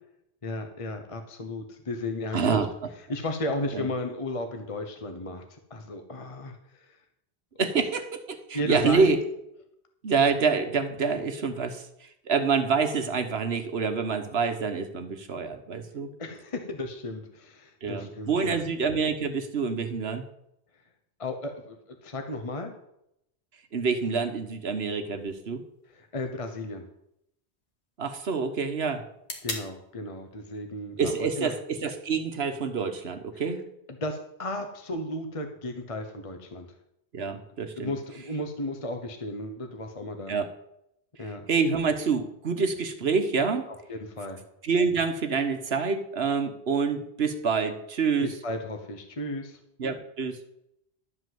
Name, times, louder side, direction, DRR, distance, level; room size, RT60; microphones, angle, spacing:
voice 1, 0.4-2.5 3.1-7.0 8.5-9.1 16.2-18.6 21.2-22.8 25.9-26.9 29.4-31.5 33.9-36.7 37.8-40.3 41.2-41.5 43.7-44.4 48.2-49.6, left 1 dB, 30° left, 5 dB, 1.0 m, -34 dB
voice 2, 2.3-2.9 3.7-3.9 7.6-9.2 10.0-16.1 17.8-20.2 23.7-25.6 28.0-29.1 31.0-33.6 37.1-37.9 40.3-40.5 41.5-43.7 44.6-48.3 49.8-50.4, right 5 dB, 70° right, 7 dB, 1.3 m, -27 dB
sound 1, 25.2-33.2, left 2 dB, 90° left, 2.2 m, -46 dB
12.0 x 5.4 x 7.8 m, 0.79 s
omnidirectional pair, 1.1 m